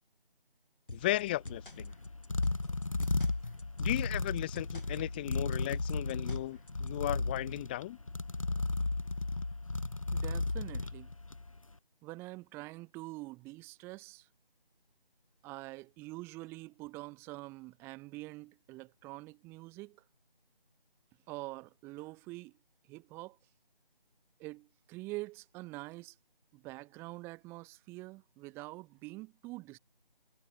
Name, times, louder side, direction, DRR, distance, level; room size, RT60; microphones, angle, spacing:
sound 1, 0.9-6.9, left 2 dB, 65° left, 6.8 m, -48 dB
voice 1, 0.9-1.9 3.8-8.0, left 16 dB, 10° left, 2.4 m, -35 dB
sound 2, 1.0-11.6, left 2 dB, 35° left, 0.7 m, -35 dB
voice 2, 10.1-11.1 12.0-14.3 15.4-20.0 21.3-22.6 22.9-23.4 24.4-26.2 26.5-29.8, right 21 dB, 10° right, 6.8 m, -45 dB
figure-of-eight pair, 160°, 29 cm